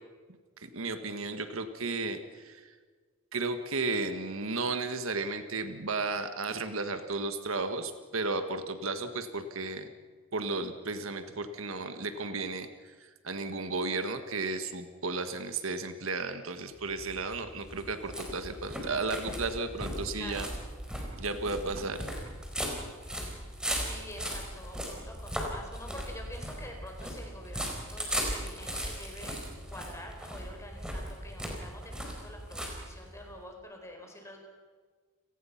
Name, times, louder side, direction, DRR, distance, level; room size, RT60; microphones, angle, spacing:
voice 1, 0.6-2.7 3.3-9.9 10.3-20.5 21.2-22.1, right 3 dB, 75° right, 8 dB, 1.6 m, -34 dB
sound 1, 16.8-33.3, equal, 5° right, 4.3 m, -38 dB
voice 2, 20.1-20.5 23.8-29.4 29.7-34.4, left 1 dB, 15° left, 2 dB, 4.6 m, -47 dB
29.5 x 18.5 x 5.9 m, 1.5 s
head